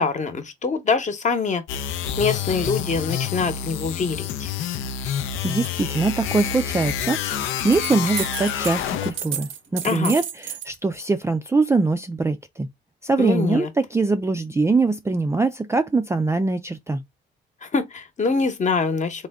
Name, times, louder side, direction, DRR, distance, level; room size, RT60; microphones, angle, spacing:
voice 1, 0.0-1.6 2.2-4.5 9.8-10.2 13.2-13.7 17.6-19.3, left 4 dB, 35° left, 1.0 m, -24 dB
sound 1, 1.7-9.3, left 8 dB, 85° left, 0.5 m, -28 dB
voice 2, 5.4-12.7 13.0-17.0, right 3 dB, 15° right, 0.4 m, -23 dB
sound 2, 7.4-8.8 9.0-10.8, right 9 dB, 80° right, 0.7 m, -32 dB
3.6 x 2.2 x 3.6 m
cardioid pair, 90°, 20 cm